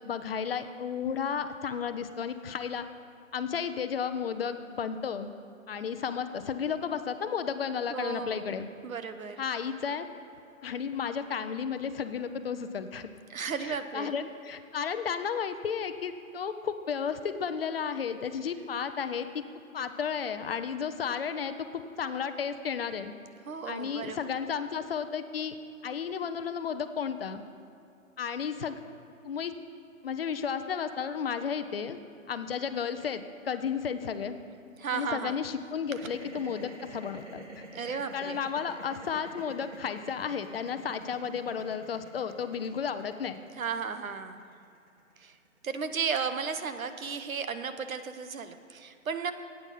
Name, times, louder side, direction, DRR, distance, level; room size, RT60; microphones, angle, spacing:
voice 1, 0.0-2.8 3.3-5.3 5.7-8.7 9.4-10.1 10.6-13.1 13.6-19.4 19.7-23.1 23.7-25.5 25.8-27.4 28.2-28.8 29.2-29.6 30.0-32.0 32.3-34.4 34.9-37.4 37.9-43.4, left 7 dB, 45° left, 10 dB, 0.6 m, -33 dB
voice 2, 7.9-9.4 13.3-14.1 23.5-24.4 34.8-35.4 37.7-38.4 43.6-44.5 45.2-45.4 45.6-49.3, right 6 dB, 80° right, 10 dB, 1.0 m, -34 dB
sound 1, 35.9-46.0, right 1 dB, 55° right, 2.2 m, -48 dB
12.0 x 8.9 x 5.6 m, 2.7 s
hypercardioid pair, 155°, 41 cm